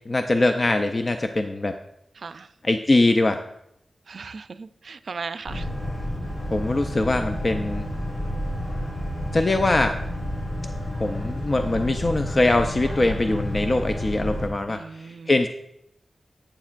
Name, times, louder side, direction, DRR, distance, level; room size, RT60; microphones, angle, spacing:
voice 1, 0.1-1.8 2.6-3.4 6.5-7.9 9.3-10.0 11.0-15.5, left 2 dB, 35° left, 6 dB, 0.4 m, -22 dB
voice 2, 2.2-2.5 4.1-5.7 14.7-15.3, right 5 dB, 70° right, 12 dB, 0.4 m, -37 dB
Boat Water vehicle, 5.5-14.5, equal, 70° left, 3.1 m, -30 dB
11.5 x 8.8 x 2.5 m, 0.79 s
wide cardioid pair, 120°, 0 cm